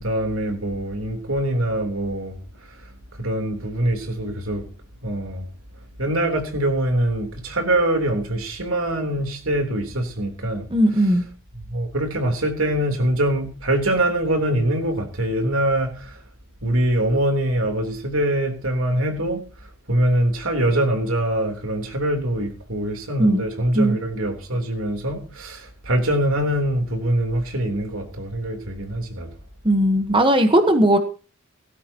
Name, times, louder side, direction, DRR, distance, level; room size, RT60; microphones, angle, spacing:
voice 1, 0.0-2.4 3.2-4.7 5.0-5.5 6.0-10.7 11.7-16.2 16.6-19.4 19.9-29.3, right 1 dB, 75° right, 3.6 m, -23 dB
voice 2, 10.7-11.3 23.2-23.4 23.7-24.0 29.6-31.0, right 1 dB, 25° right, 1.3 m, -17 dB
18.0 x 15.0 x 3.0 m
head